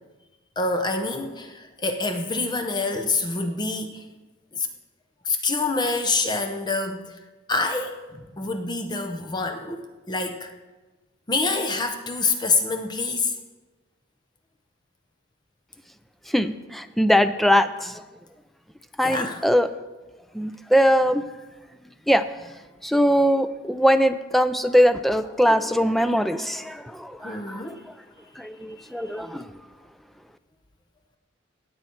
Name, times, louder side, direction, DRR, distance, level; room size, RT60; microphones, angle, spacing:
voice 1, 0.6-4.0 4.5-4.7 5.2-7.2 7.5-10.5 11.3-13.3 19.0-19.4 27.2-27.8 28.8-28.9, left 3 dB, 20° left, 6 dB, 0.8 m, -26 dB
voice 2, 16.3-18.0 19.0-19.7 20.3-21.2 22.1-22.2 22.8-27.6 28.4-29.5, equal, ahead, 11 dB, 0.4 m, -21 dB
17.0 x 7.8 x 4.5 m, 1.2 s
head